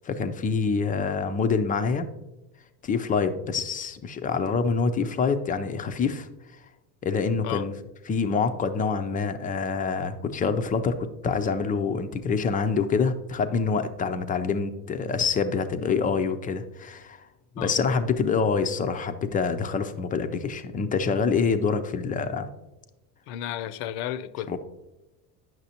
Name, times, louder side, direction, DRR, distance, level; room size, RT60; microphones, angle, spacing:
voice 1, 0.0-2.1 2.8-6.3 7.0-7.7 8.1-17.3 17.6-22.5 24.5-24.6, left 5 dB, 20° left, 0.3 m, -26 dB
voice 2, 23.3-24.6, left 11 dB, 70° left, 0.6 m, -33 dB
9.1 x 6.0 x 2.8 m
supercardioid pair, 95°, 49 cm